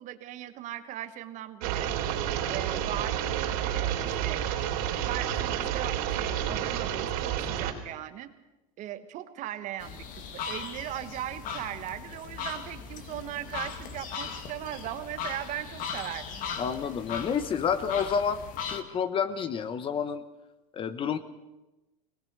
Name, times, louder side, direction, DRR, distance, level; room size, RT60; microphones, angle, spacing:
voice 1, 0.0-2.0 2.5-4.4 5.0-8.3 8.8-16.5, right 12 dB, 40° right, 11 dB, 1.3 m, -38 dB
sound 1, 1.6-7.7, right 10 dB, 65° right, 3.7 m, -30 dB
sound 2, 9.8-18.8, left 6 dB, 45° left, 2.0 m, -38 dB
voice 2, 16.6-20.2 20.7-21.2, left 7 dB, 25° left, 13 dB, 1.0 m, -29 dB
20.5 x 19.0 x 6.8 m, 1.0 s
supercardioid pair, 140°, 19 cm